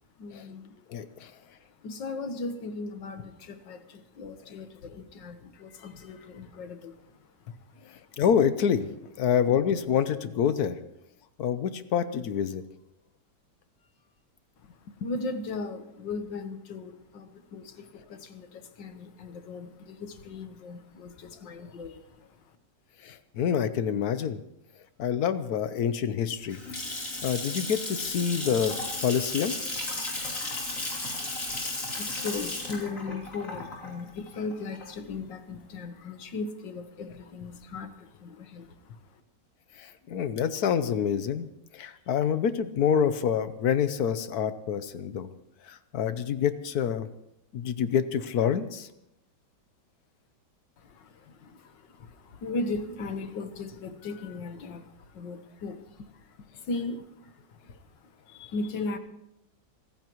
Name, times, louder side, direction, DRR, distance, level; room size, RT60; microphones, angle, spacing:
voice 1, 0.2-1.0 1.8-8.2 14.6-22.6 31.1-39.2 50.8-59.0, left 3 dB, 85° left, 9 dB, 1.9 m, -38 dB
voice 2, 0.9-1.3 8.2-8.9 9.2-10.8 11.4-12.6 23.0-24.4 25.0-26.6 27.2-28.7 29.0-29.6 39.8-41.5 41.7-45.3 45.7-47.1 47.5-48.9, left 8 dB, 65° left, 12 dB, 1.3 m, -27 dB
Water tap faucet / Sink (filling or washing) / Splash splatter, 26.3-35.1, left 2 dB, 45° left, 3.6 m, -34 dB
26.0 x 14.5 x 3.1 m, 0.83 s
omnidirectional pair, 1.9 m